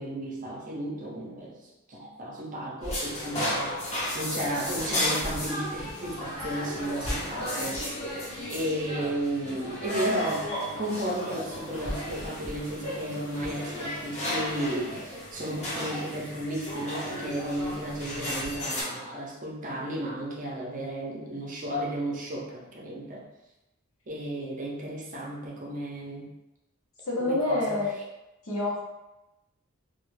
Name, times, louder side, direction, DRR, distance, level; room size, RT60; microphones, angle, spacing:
voice 1, 0.0-8.1 8.5-23.2 24.1-26.3 27.2-27.8, right 1 dB, 35° right, -3 dB, 0.6 m, -34 dB
sound 1, 2.8-18.8, left 1 dB, 30° left, 0.7 m, -33 dB
voice 2, 27.1-27.9 28.4-28.8, left 2 dB, 70° left, -5 dB, 0.9 m, -27 dB
2.4 x 2.3 x 3.1 m, 0.98 s
head